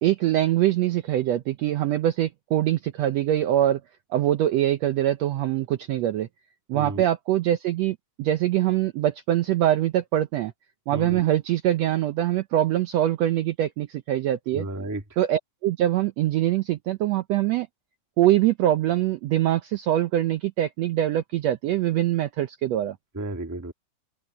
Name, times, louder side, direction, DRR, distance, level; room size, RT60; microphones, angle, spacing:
voice 1, 0.0-3.8 4.1-6.3 6.7-10.5 10.9-14.7 15.2-17.7 18.2-23.0, right 13 dB, 75° right, 1.6 m, -23 dB
voice 2, 6.7-7.0 10.9-11.3 14.5-15.0 23.1-23.7, right 2 dB, 10° right, 1.1 m, -32 dB
open air
omnidirectional pair, 3.7 m